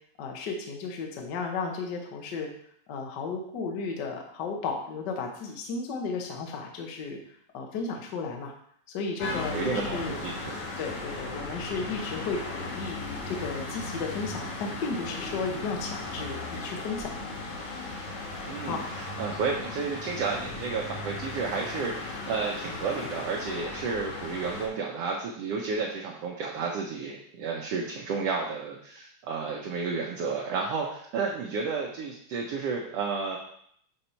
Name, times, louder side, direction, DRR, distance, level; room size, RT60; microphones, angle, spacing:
voice 1, 0.2-2.5 2.9-8.5 8.9-10.2 10.8-17.1 18.6-18.9, left 4 dB, 85° left, 2 dB, 0.9 m, -34 dB
sound 1, 9.2-24.7, left 2 dB, 70° left, 2.7 m, -36 dB
voice 2, 9.2-10.5 18.4-33.4, right 5 dB, 70° right, -2 dB, 1.6 m, -32 dB
6.9 x 4.2 x 4.4 m, 0.66 s
omnidirectional pair, 3.5 m